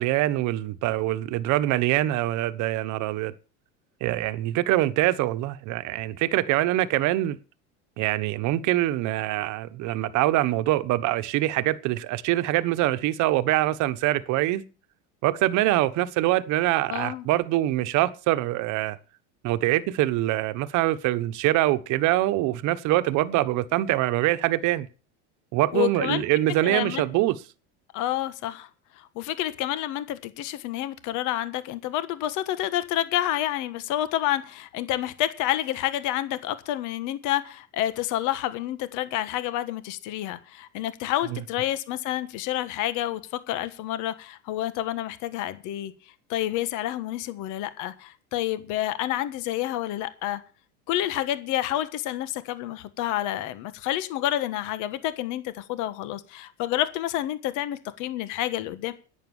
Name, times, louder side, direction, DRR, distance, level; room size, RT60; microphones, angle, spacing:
voice 1, 0.0-3.3 4.0-7.4 8.0-14.6 15.2-19.0 19.4-24.9 25.5-27.4 41.3-41.4, right 16 dB, 55° right, 1.2 m, -24 dB
voice 2, 16.9-17.2 25.7-26.2 26.6-27.0 27.9-28.7 29.0-43.2 43.5-45.9 46.3-50.4 50.9-58.9, left 13 dB, 55° left, 1.5 m, -29 dB
11.0 x 9.5 x 7.2 m
supercardioid pair, 130°, 36 cm